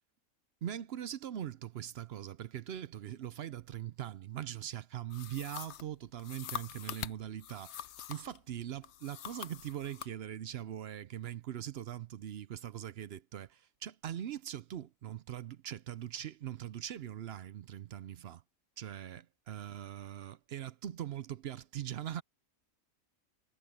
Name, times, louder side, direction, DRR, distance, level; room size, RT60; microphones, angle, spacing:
voice 1, 0.6-18.4 18.8-22.2, right 11 dB, 60° right, 0.7 m, -41 dB
sound 1, 5.1-8.4 8.8-10.1, left 10 dB, 65° left, 0.8 m, -44 dB
omnidirectional pair, 1.4 m